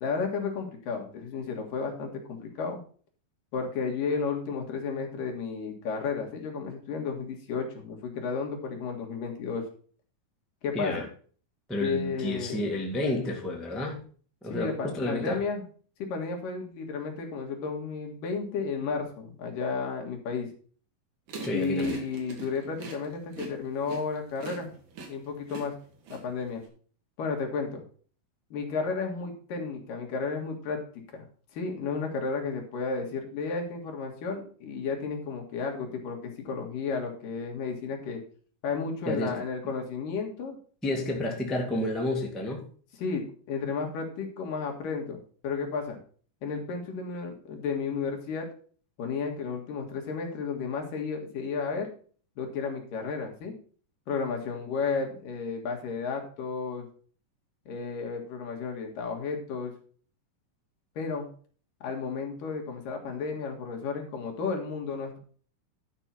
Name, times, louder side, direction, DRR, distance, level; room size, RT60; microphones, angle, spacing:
voice 1, 0.0-2.8 3.5-9.7 10.6-11.1 11.8-12.6 14.5-15.6 16.0-20.5 21.5-24.7 25.1-25.8 26.1-26.6 27.2-27.8 28.5-30.8 31.1-31.3 31.5-38.2 38.6-40.6 43.0-46.0 46.4-48.5 49.0-51.9 52.4-53.5 54.1-56.9 57.7-59.7 61.0-61.3 61.8-65.2, left 5 dB, 75° left, 3.5 m, -32 dB
voice 2, 10.7-11.0 11.7-14.0 14.4-15.4 21.4-22.0 39.0-39.4 40.8-42.7, left 1 dB, ahead, 1.1 m, -30 dB
sound 1, 21.3-26.7, right 3 dB, 65° right, 3.6 m, -41 dB
11.0 x 5.5 x 5.9 m
omnidirectional pair, 3.9 m